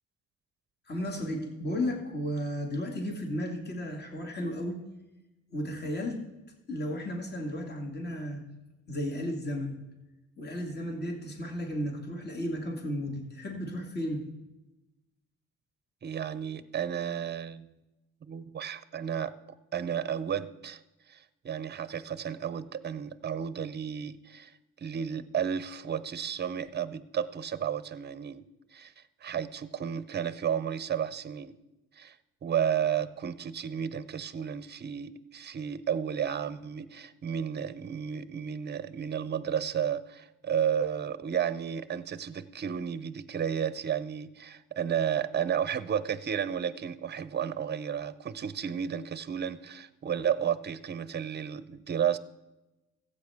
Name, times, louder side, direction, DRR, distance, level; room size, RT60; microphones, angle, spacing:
voice 1, 0.9-4.8 5.5-6.2 6.7-8.4 8.9-9.8 10.4-14.2, equal, 35° left, 2 dB, 2.1 m, -34 dB
voice 2, 16.0-17.7 18.2-19.3 19.7-20.8 21.1-24.5 24.8-28.4 28.7-28.9 29.2-31.5 32.0-32.1 32.4-52.2, right 8 dB, 35° right, 15 dB, 0.6 m, -32 dB
15.0 x 8.3 x 3.6 m, 1.0 s
cardioid pair, 90°, 30 cm